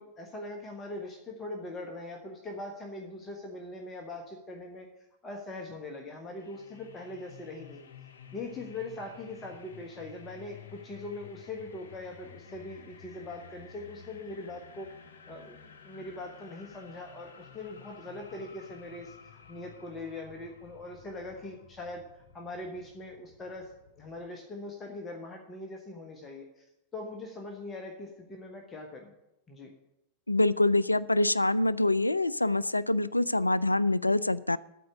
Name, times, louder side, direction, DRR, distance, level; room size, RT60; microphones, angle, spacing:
voice 1, 0.0-4.9 5.2-7.8 8.3-14.9 15.3-15.6 15.8-19.1 19.5-26.6 26.9-29.1 29.5-29.7, left 2 dB, 20° left, 2 dB, 1.3 m, -41 dB
sound 1, 6.3-24.3, left 7 dB, 65° left, 0.7 m, -53 dB
voice 2, 30.3-34.6, left 2 dB, 85° left, 21 dB, 0.3 m, -25 dB
13.5 x 4.5 x 8.4 m, 0.88 s
figure-of-eight pair, 90°, 0 cm